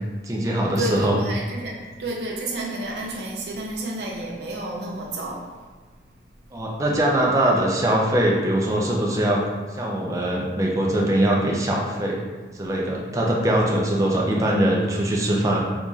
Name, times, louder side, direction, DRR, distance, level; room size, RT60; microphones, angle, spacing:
voice 1, 0.2-1.2 6.5-9.4 9.7-12.2 12.6-15.6, right 1 dB, 20° right, -2 dB, 0.4 m, -22 dB
voice 2, 0.8-5.4, right 1 dB, 75° right, -2 dB, 0.5 m, -30 dB
3.9 x 2.9 x 2.4 m, 1.4 s
head